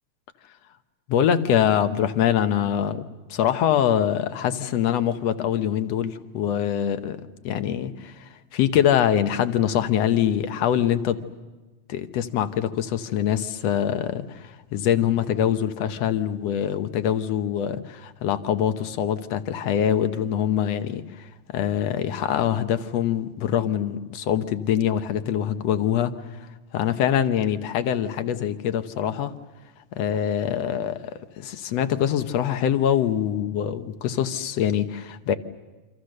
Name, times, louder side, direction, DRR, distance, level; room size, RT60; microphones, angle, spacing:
voice 1, 1.1-3.0 3.3-7.2 7.4-11.2 11.9-26.2 26.7-29.3 30.0-31.0 31.4-35.4, left 10 dB, 65° left, 9 dB, 2.0 m, -24 dB
28.5 x 26.0 x 6.6 m, 1.2 s
omnidirectional pair, 3.4 m